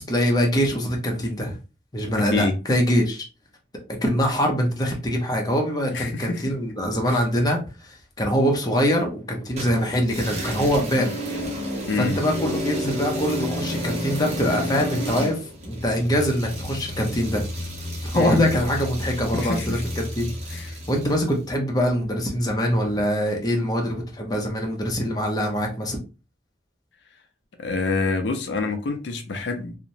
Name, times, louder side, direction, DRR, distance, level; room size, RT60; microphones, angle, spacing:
voice 1, 0.0-1.6 1.9-3.2 4.0-11.1 12.0-17.5 18.0-20.3 20.9-26.0, equal, 20° left, 1 dB, 0.6 m, -23 dB
voice 2, 2.1-2.5 5.9-6.4 7.1-7.2 11.9-12.2 18.1-18.4 19.3-19.8 20.5-20.8 27.6-29.8, left 3 dB, 80° left, 6 dB, 0.5 m, -27 dB
sound 1, 9.6-21.3, left 1 dB, 40° right, 0.8 m, -31 dB
2.8 x 2.1 x 2.6 m, 0.32 s
head